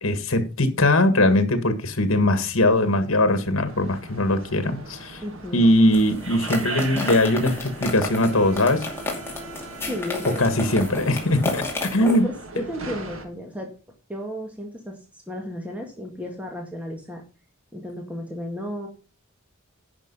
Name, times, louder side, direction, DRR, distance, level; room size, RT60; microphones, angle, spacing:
voice 1, 0.0-5.2 5.5-8.9 10.4-12.3, left 1 dB, 70° left, 1.7 m, -20 dB
sound 1, 3.7-13.3, right 3 dB, 70° right, 2.0 m, -38 dB
voice 2, 5.2-5.7 9.8-10.6 12.0-13.7 14.1-17.2 17.7-18.9, equal, 5° right, 1.8 m, -34 dB
sound 2, 5.9-12.2, left 2 dB, 10° left, 2.5 m, -32 dB
10.5 x 5.9 x 5.5 m
head